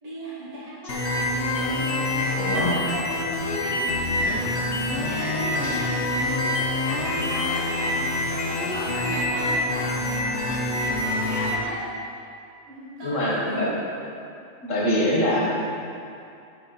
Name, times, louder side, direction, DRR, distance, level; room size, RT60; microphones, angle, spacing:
voice 1, 0.0-1.4 1.7-3.0 3.4-4.3 5.0-12.0 12.6-13.6, right 1 dB, 30° right, -9 dB, 1.5 m, -36 dB
sound 1, 0.9-11.6, left 1 dB, 65° left, 1.0 m, -26 dB
voice 2, 2.4-2.7 4.2-4.4 5.6-5.8 13.0-13.7 14.6-15.4, left 1 dB, 80° left, -4 dB, 1.7 m, -24 dB
9.4 x 4.4 x 3.9 m, 2.5 s
omnidirectional pair, 1.3 m